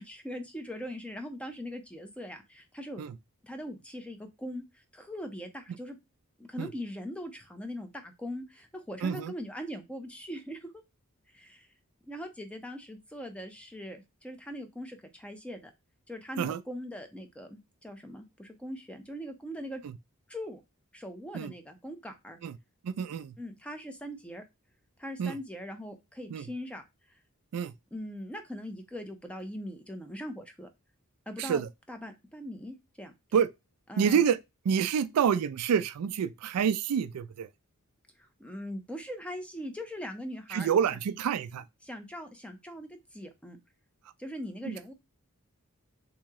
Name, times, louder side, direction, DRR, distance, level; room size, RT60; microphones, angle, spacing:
voice 1, 0.0-3.0 3.4-6.0 6.4-10.7 11.3-11.7 12.0-15.7 16.1-19.8 20.3-20.6 20.9-22.4 23.4-24.4 25.0-27.2 27.9-30.7 31.3-31.6 31.9-33.1 33.9-34.2 38.2-40.7 41.8-43.6 44.2-44.9, equal, 5° left, 0.5 m, -41 dB
voice 2, 9.0-9.3 16.4-16.6 21.3-21.5 22.4-22.6 22.8-23.4 25.2-25.4 26.3-26.5 27.5-27.7 31.4-31.7 33.3-33.5 34.0-34.4 34.6-37.5 40.5-41.6 44.7-44.8, right 7 dB, 85° right, 0.4 m, -28 dB
3.0 x 2.7 x 3.6 m
head